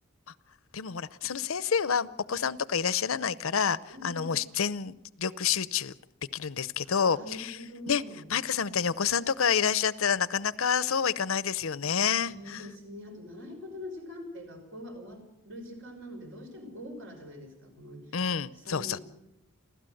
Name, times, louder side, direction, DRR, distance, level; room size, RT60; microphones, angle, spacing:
voice 1, 0.7-3.8 4.0-5.9 6.3-7.6 7.9-8.0 8.3-12.6 18.1-19.0, left 7 dB, 80° left, 18 dB, 0.7 m, -28 dB
voice 2, 3.9-4.4 6.8-8.2 12.4-18.2 18.5-19.0, left 1 dB, 70° right, 4 dB, 5.5 m, -44 dB
30.0 x 12.5 x 7.8 m, 0.86 s
head